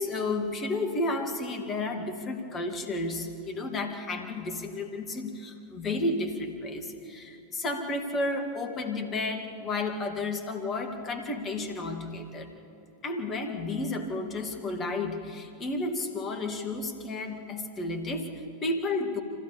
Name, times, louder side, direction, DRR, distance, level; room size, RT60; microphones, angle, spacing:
voice 1, 0.0-12.5 13.0-19.2, left 2 dB, 25° left, 4 dB, 2.2 m, -32 dB
25.5 x 16.5 x 7.1 m, 2.8 s
figure-of-eight pair, 90°, 0 cm